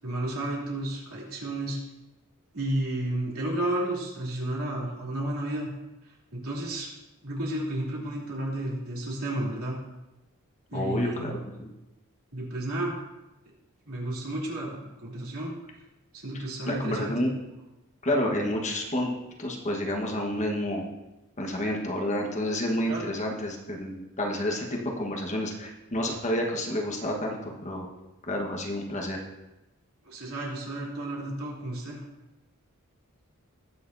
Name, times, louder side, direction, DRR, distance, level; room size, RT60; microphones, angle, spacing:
voice 1, 0.0-1.8 2.5-5.7 6.4-6.9 7.2-9.8 10.7-11.4 12.3-13.0 13.9-15.5 16.1-17.3 22.9-23.1 30.0-32.0, right 1 dB, 75° right, -4 dB, 3.2 m, -32 dB
voice 2, 10.7-11.7 16.3-17.3 18.0-19.1 19.4-20.9 21.4-27.8 28.3-29.2, left 1 dB, 35° left, 1 dB, 1.3 m, -29 dB
19.5 x 6.9 x 2.7 m, 0.98 s
head